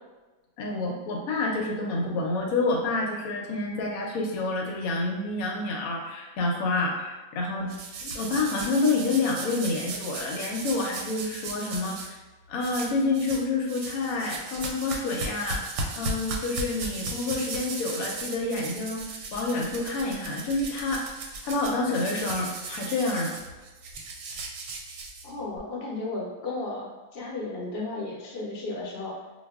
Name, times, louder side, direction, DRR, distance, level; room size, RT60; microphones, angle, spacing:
voice 1, 0.6-7.7 8.0-12.2 12.5-15.6 15.9-21.1 21.4-23.4, left 3 dB, 85° left, 0 dB, 1.0 m, -28 dB
sound 1, 7.7-12.1 12.6-13.4 13.7-25.6, right 3 dB, 65° right, 0.8 m, -36 dB
voice 2, 25.2-29.1, left 2 dB, 50° left, -4 dB, 0.9 m, -34 dB
4.7 x 2.2 x 2.3 m, 1.2 s
omnidirectional pair, 1.5 m